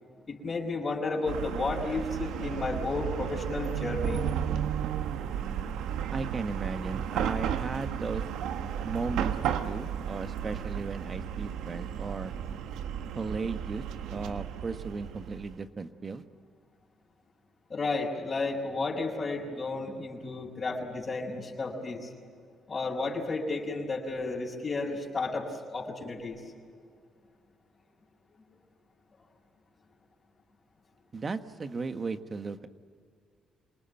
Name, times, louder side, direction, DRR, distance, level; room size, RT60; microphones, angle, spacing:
voice 1, 0.3-4.2 17.7-22.1 22.7-26.4, left 3 dB, 40° left, -4 dB, 5.0 m, -32 dB
Chatter / Car passing by / Traffic noise roadway noise, 1.3-15.5, right 8 dB, 85° right, 1.2 m, -33 dB
voice 2, 6.1-8.2 8.8-9.3 9.6-12.3 13.1-16.2 31.1-32.7, right 4 dB, 40° right, 9 dB, 1.5 m, -35 dB
27.0 x 19.5 x 9.2 m, 2.1 s
cardioid pair, 80°, 0 cm